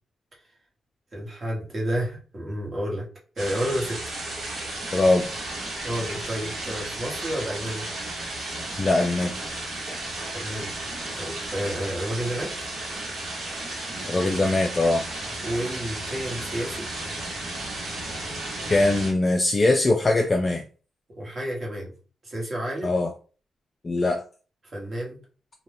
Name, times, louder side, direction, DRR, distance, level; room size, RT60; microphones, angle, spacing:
voice 1, 1.1-3.1 3.4-4.0 5.8-7.8 10.3-12.7 15.4-16.9 21.2-21.9 22.2-22.9 24.6-25.2, equal, 35° right, -3 dB, 1.1 m, -31 dB
sound 1, 3.4-19.1, right 2 dB, 65° right, 1.0 m, -34 dB
voice 2, 4.9-5.3 8.8-9.4 14.1-15.0 18.7-20.6 22.8-23.1 23.8-24.2, left 2 dB, 25° left, 3 dB, 0.3 m, -21 dB
2.6 x 2.2 x 3.3 m, 0.37 s
cardioid pair, 125°, 0 cm